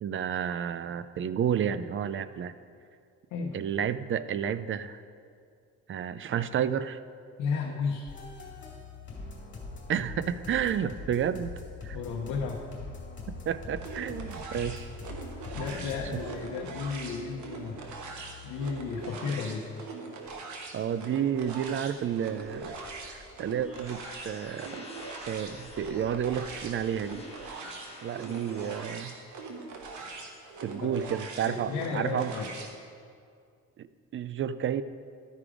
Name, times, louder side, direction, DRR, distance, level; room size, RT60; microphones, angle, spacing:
voice 1, 0.0-2.5 3.5-5.0 5.9-7.0 9.9-11.5 11.8-12.0 13.3-14.9 16.1-16.2 20.7-22.8 23.0-24.9 25.2-27.6 28.0-29.2 30.6-32.3 33.8-33.9 34.1-34.8, right 9 dB, 45° right, 14 dB, 0.4 m, -31 dB
voice 2, 7.4-8.1 11.9-12.6 15.5-17.9 18.4-19.7 30.8-30.9 31.5-32.5, left 5 dB, 85° left, -1 dB, 0.9 m, -33 dB
sound 1, 8.1-18.8, left 3 dB, 40° left, 2.5 m, -43 dB
sound 2, 13.8-32.7, right 3 dB, 70° right, 1.2 m, -42 dB
sound 3, 21.3-28.9, left 2 dB, 20° left, 1.4 m, -50 dB
12.5 x 5.0 x 4.8 m, 2.3 s
cardioid pair, 90°, 30 cm